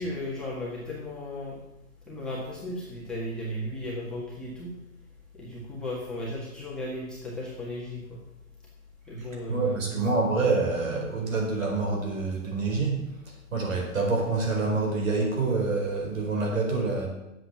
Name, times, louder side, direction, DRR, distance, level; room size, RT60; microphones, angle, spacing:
voice 1, 0.0-1.6 2.1-4.7 5.3-8.2 9.1-10.1, equal, ahead, -8 dB, 1.7 m, -35 dB
voice 2, 9.5-13.0 13.5-17.1, right 3 dB, 70° right, 1 dB, 4.9 m, -26 dB
11.5 x 7.8 x 7.4 m, 0.91 s
hypercardioid pair, 165°, 41 cm